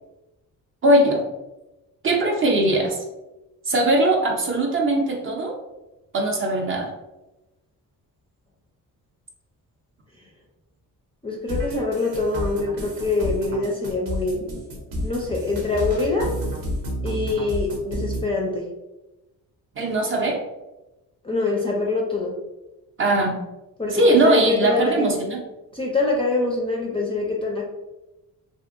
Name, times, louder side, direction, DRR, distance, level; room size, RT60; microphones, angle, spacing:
voice 1, 0.8-1.2 2.0-3.0 3.7-5.5 6.1-6.9 19.8-20.4 23.0-23.4 23.9-25.4, right 1 dB, 35° right, 0 dB, 0.5 m, -20 dB
voice 2, 11.2-14.5 15.0-16.3 17.0-18.7 21.2-22.3 23.8-25.2 25.7-27.6, left 3 dB, 15° left, -2 dB, 0.4 m, -24 dB
sound 1, 11.5-18.2, equal, 80° right, 0.8 m, -30 dB
2.7 x 2.5 x 2.4 m, 1.0 s
cardioid pair, 130°, 36 cm